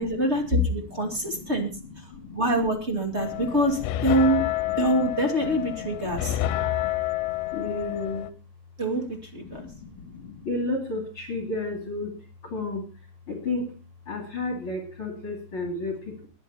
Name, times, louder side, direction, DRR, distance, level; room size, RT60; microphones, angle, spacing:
voice 1, 0.0-1.7 2.3-4.4 4.8-6.4 8.8-9.0 9.3-9.7, right 1 dB, 25° right, 4 dB, 1.6 m, -25 dB
voice 2, 0.7-2.4 3.1-3.6 4.4-4.8 5.4-6.9 7.5-8.3 9.4-12.1 12.4-12.9 13.3-13.7 14.1-16.3, left 2 dB, 35° left, 3 dB, 3.1 m, -34 dB
sound 1, 3.2-8.3, left 14 dB, 80° left, 2.9 m, -29 dB
20.5 x 10.0 x 4.2 m, 0.33 s
omnidirectional pair, 5.1 m